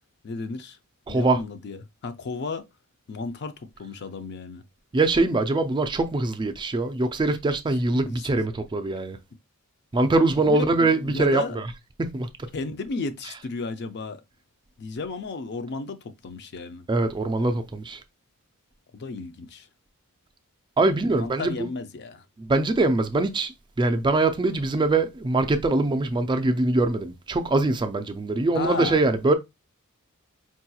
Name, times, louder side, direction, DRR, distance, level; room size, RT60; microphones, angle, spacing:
voice 1, 0.2-0.8 1.1-2.6 3.1-4.6 10.5-10.6 10.9-11.6 12.5-14.2 14.8-16.9 18.9-19.7 21.1-22.2 28.5-29.0, left 4 dB, 50° left, 0.5 m, -33 dB
voice 2, 1.1-1.4 4.9-9.2 9.9-11.7 12.0-12.5 16.9-18.0 20.8-21.7 22.4-23.5 23.8-29.3, right 2 dB, 20° right, 0.3 m, -23 dB
4.6 x 2.8 x 2.2 m
head